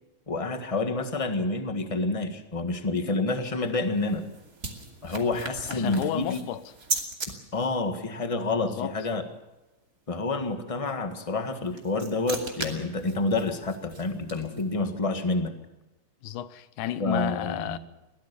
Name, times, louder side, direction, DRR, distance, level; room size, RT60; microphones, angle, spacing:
voice 1, 0.3-4.2 5.0-6.4 7.5-9.2 10.1-15.5 17.0-17.8, left 3 dB, 20° left, 0.8 m, -28 dB
sound 1, 3.7-7.3 11.4-14.8, right 3 dB, 30° right, 2.8 m, -37 dB
voice 2, 5.7-6.6 8.7-8.9 16.2-17.8, left 12 dB, 85° left, 2.5 m, -31 dB
22.5 x 17.0 x 6.9 m
omnidirectional pair, 3.5 m